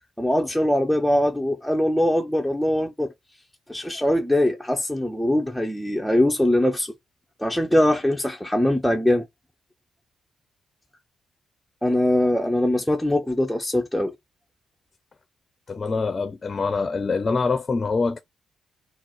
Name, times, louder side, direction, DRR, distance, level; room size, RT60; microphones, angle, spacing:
voice 1, 0.2-3.1 3.7-6.9 7.4-9.3 11.8-14.1, left 1 dB, ahead, 0.7 m, -22 dB
voice 2, 15.7-18.2, left 4 dB, 40° left, 0.6 m, -24 dB
3.8 x 2.0 x 4.3 m
hypercardioid pair, 45°, 0 cm